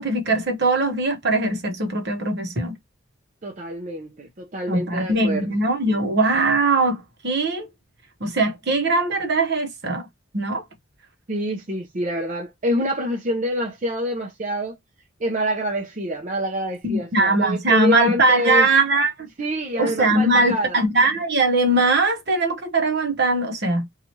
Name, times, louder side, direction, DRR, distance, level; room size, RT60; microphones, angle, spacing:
voice 1, 0.0-2.8 4.7-7.7 8.2-10.1 10.3-10.6 16.8-19.1 19.8-23.9, right 2 dB, 55° right, 0.9 m, -20 dB
voice 2, 3.4-5.5 11.3-14.8 15.2-18.7 19.4-20.8, equal, 40° right, 0.6 m, -26 dB
2.8 x 2.4 x 2.9 m
head